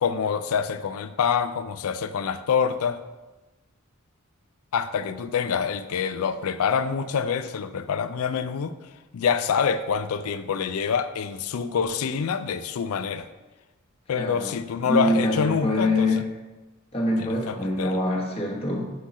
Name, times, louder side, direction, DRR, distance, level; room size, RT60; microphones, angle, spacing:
voice 1, 0.0-3.0 4.7-8.7 9.1-13.3 14.1-16.2 17.2-18.0, left 6 dB, 70° left, 12 dB, 0.4 m, -26 dB
voice 2, 14.2-14.5 14.8-16.2 16.9-18.9, left 1 dB, 25° left, -2 dB, 1.1 m, -25 dB
7.5 x 3.7 x 4.2 m, 1.1 s
head